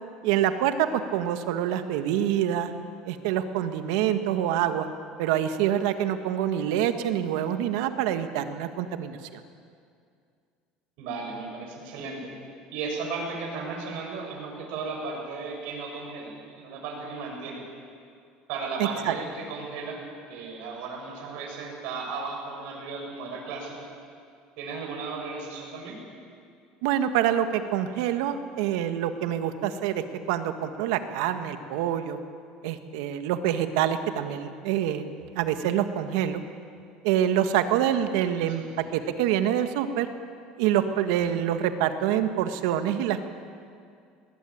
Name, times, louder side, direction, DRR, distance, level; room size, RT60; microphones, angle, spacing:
voice 1, 0.2-2.7 3.0-4.9 5.2-9.4 18.8-19.1 26.8-32.2 32.6-36.4 37.0-38.6 38.9-40.1 40.6-43.3, right 10 dB, 85° right, 8 dB, 1.6 m, -26 dB
voice 2, 11.0-12.3 12.7-17.6 18.5-20.0 20.3-23.9 24.6-26.0 38.4-38.7, right 4 dB, 70° right, 0 dB, 6.9 m, -35 dB
20.5 x 19.5 x 8.7 m, 2.3 s
cardioid pair, 150°, 3 cm